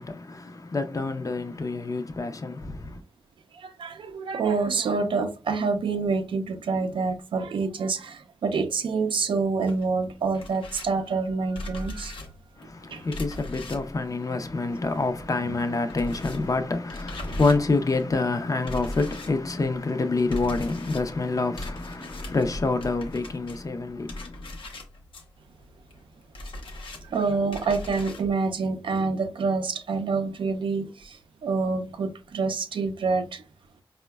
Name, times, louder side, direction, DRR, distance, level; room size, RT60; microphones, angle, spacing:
voice 1, 0.0-3.0 12.6-24.6, left 3 dB, 40° left, 0.5 m, -27 dB
voice 2, 3.5-12.2 12.9-13.0 15.5-15.6 17.3-17.4 27.1-33.4, right 4 dB, 75° right, 0.4 m, -27 dB
sound 1, 9.7-15.2 15.4-28.3, left 1 dB, 80° left, 0.7 m, -39 dB
4.5 x 2.1 x 2.2 m
cardioid pair, 60°, 9 cm